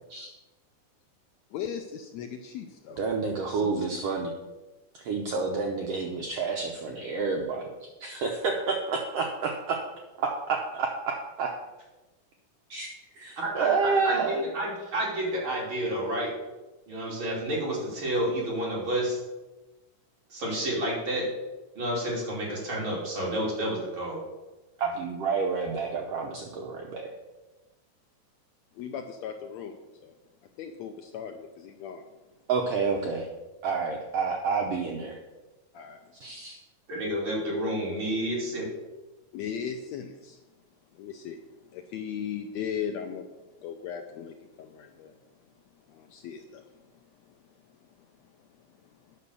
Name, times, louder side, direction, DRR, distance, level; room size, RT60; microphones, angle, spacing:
voice 1, 1.5-3.0 3.5-3.8 28.7-30.1 30.6-32.0 35.7-36.0 39.3-40.4 40.9-41.4 41.7-43.2 43.6-45.2 45.9-46.6, left 8 dB, 75° left, 5 dB, 1.7 m, -37 dB
voice 2, 3.0-4.3 4.9-7.7 8.0-9.8 10.2-11.5 12.7-12.9 13.2-14.4 24.8-27.1 32.5-33.3 33.6-35.2 36.2-36.6, right 4 dB, 65° right, 1 dB, 1.6 m, -29 dB
voice 3, 13.4-16.3 16.9-19.2 20.3-21.3 21.8-24.2 36.9-38.7, right 1 dB, 40° right, -4 dB, 3.6 m, -30 dB
9.8 x 6.2 x 6.8 m, 1.1 s
omnidirectional pair, 3.6 m